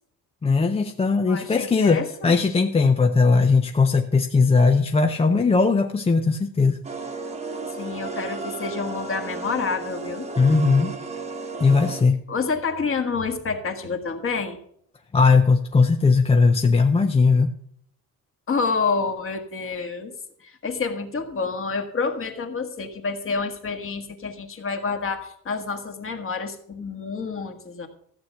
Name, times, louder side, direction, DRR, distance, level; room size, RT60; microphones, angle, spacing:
voice 1, 0.4-6.8 10.4-10.9 11.6-12.2 15.1-17.5, left 4 dB, 15° left, 5 dB, 0.5 m, -19 dB
voice 2, 1.3-2.4 7.8-10.3 12.3-14.6 18.5-20.1 20.4-27.9, left 4 dB, 35° left, 5 dB, 1.6 m, -28 dB
sound 1, 6.8-12.0, right 4 dB, 15° right, 1.2 m, -33 dB
14.5 x 7.9 x 5.7 m, 0.67 s
cardioid pair, 145°, 39 cm